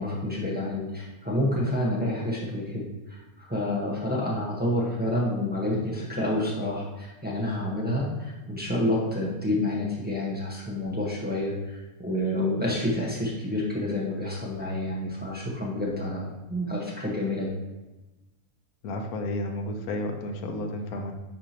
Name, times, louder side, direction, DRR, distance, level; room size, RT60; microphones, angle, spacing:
voice 1, 0.0-2.8 3.1-17.5, left 1 dB, 5° right, -5 dB, 1.2 m, -29 dB
voice 2, 18.8-21.1, left 1 dB, 85° left, 4 dB, 1.3 m, -32 dB
10.0 x 4.9 x 3.0 m, 1.1 s
omnidirectional pair, 1.5 m